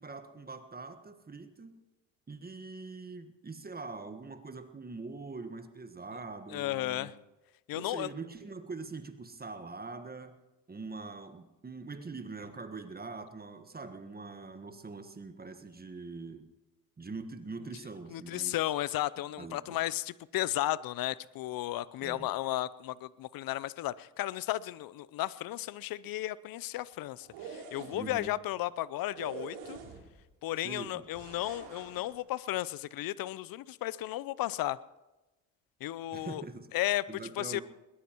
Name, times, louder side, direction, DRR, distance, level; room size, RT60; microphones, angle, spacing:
voice 1, 0.0-1.8 2.3-7.1 7.7-10.4 10.7-16.5 17.0-18.6 19.4-19.8 22.0-22.3 27.9-28.3 30.6-31.0 36.1-36.7 37.1-37.6, right 3 dB, 20° right, 8 dB, 1.4 m, -43 dB
voice 2, 6.5-7.1 7.7-8.1 18.1-29.8 30.4-34.8 35.8-36.4 36.7-37.0 37.4-37.6, left 15 dB, 55° left, 19 dB, 0.7 m, -34 dB
sound 1, 27.2-28.2 29.2-30.2 31.1-32.1, right 5 dB, 70° right, 3.5 m, -45 dB
21.0 x 20.0 x 3.1 m, 1.1 s
hypercardioid pair, 60°, 43 cm